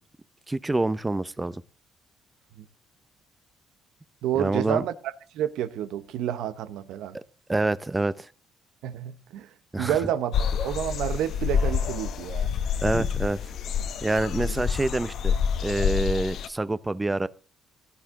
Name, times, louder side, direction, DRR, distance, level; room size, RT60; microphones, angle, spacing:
voice 1, 0.5-1.6 4.4-4.8 7.5-8.3 9.7-10.0 12.8-13.4 14.0-15.4 15.6-17.3, right 2 dB, 20° right, 0.7 m, -26 dB
voice 2, 4.2-4.9 5.3-7.2 8.8-9.5 9.8-12.5 14.4-14.6, right 10 dB, 85° right, 0.8 m, -29 dB
sound 1, 10.3-16.5, left 7 dB, 70° left, 1.0 m, -27 dB
16.0 x 11.0 x 3.8 m
cardioid pair, 75°, 0 cm